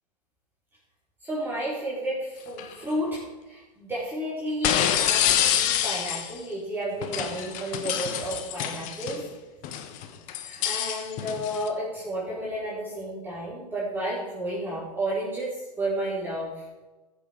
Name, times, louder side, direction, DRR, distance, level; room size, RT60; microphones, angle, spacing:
voice 1, 1.2-9.3 10.4-16.6, right 1 dB, 10° right, -8 dB, 4.3 m, -32 dB
sound 1, 2.5-2.7 4.6-6.4 7.0-9.2 9.6-11.7, left 10 dB, 40° left, 1.3 m, -27 dB
15.0 x 7.4 x 5.2 m, 1.2 s
hypercardioid pair, 115°, 21 cm